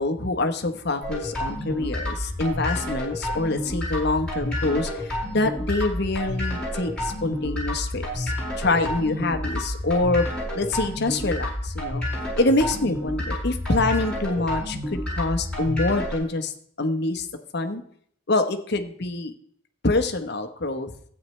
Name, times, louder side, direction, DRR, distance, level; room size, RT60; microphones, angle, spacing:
voice 1, 0.0-12.0 12.3-16.5 16.8-17.3 17.5-17.8 18.3-19.3 19.8-20.9, left 2 dB, 50° left, 7 dB, 0.9 m, -25 dB
sound 1, 1.0-16.2, left 1 dB, 5° left, 4.9 m, -30 dB
13.0 x 8.8 x 3.2 m, 0.63 s
head